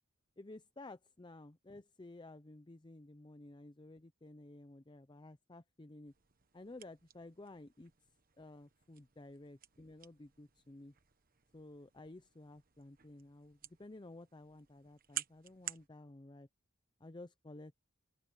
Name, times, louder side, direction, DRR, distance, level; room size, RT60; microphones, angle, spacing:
voice 1, 0.4-6.1 6.5-7.9 8.4-10.9 11.5-16.5 17.0-17.8, left 2 dB, 20° left, 0.6 m, -53 dB
sound 1, 6.1-15.9, right 11 dB, 45° right, 1.2 m, -51 dB
open air
head